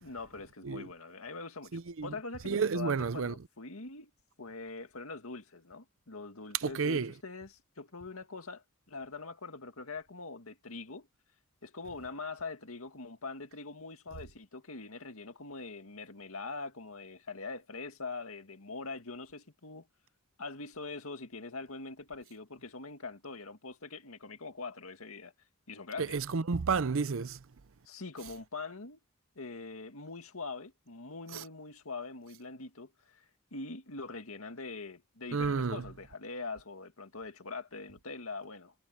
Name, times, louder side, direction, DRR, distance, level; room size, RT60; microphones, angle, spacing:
voice 1, 0.0-4.1 4.4-11.1 11.6-19.9 20.4-25.3 25.7-26.2 27.8-29.0 29.4-38.7, left 3 dB, 85° left, 2.1 m, -43 dB
voice 2, 1.7-2.1 2.5-3.3 6.6-7.1 26.1-27.4 31.3-31.4 35.3-35.8, right 5 dB, 65° right, 0.6 m, -31 dB
head